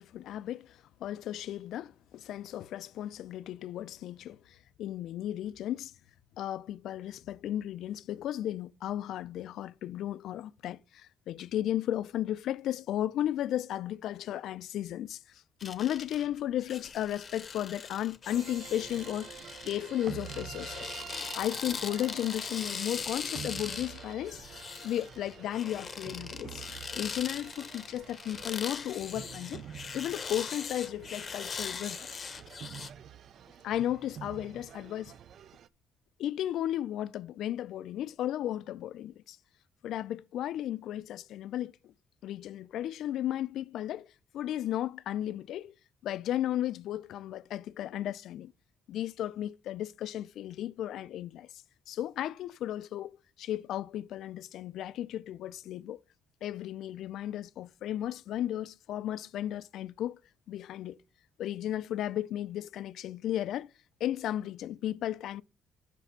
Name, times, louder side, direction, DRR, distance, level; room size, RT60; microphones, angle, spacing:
voice 1, 0.0-5.9 6.4-20.9 21.3-29.6 29.9-32.1 33.6-35.1 36.2-39.4 39.8-41.9 42.2-45.7 46.0-48.5 48.9-51.5 51.9-56.0 56.4-60.2 60.5-61.0 61.4-63.7 64.0-65.4, left 12 dB, 75° left, 0.3 m, -35 dB
sound 1, 15.6-32.9, left 5 dB, 35° left, 0.7 m, -41 dB
sound 2, 18.3-35.7, right 9 dB, 60° right, 0.4 m, -47 dB
5.8 x 5.3 x 5.5 m
cardioid pair, 120°, 0 cm